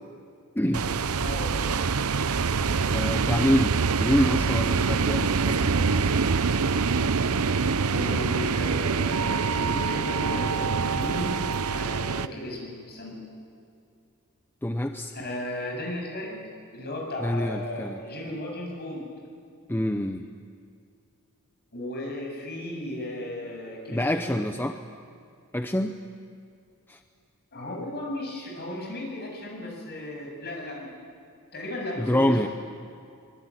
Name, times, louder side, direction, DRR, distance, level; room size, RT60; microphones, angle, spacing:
sound 1, 0.7-12.3, right 5 dB, 75° right, 0.8 m, -25 dB
voice 1, 1.2-1.5 7.9-11.4 11.7-13.2 15.1-16.4 16.7-19.1 21.7-24.4 27.5-30.9 31.5-32.5, left 1 dB, 45° left, 0 dB, 7.6 m, -35 dB
voice 2, 2.9-3.7 4.0-5.9 14.6-15.1 17.2-18.0 19.7-20.2 23.9-24.8 25.5-25.9 26.9-27.0 32.0-32.5, left 1 dB, 10° left, 6 dB, 0.8 m, -26 dB
24.0 x 24.0 x 9.8 m, 2.4 s
head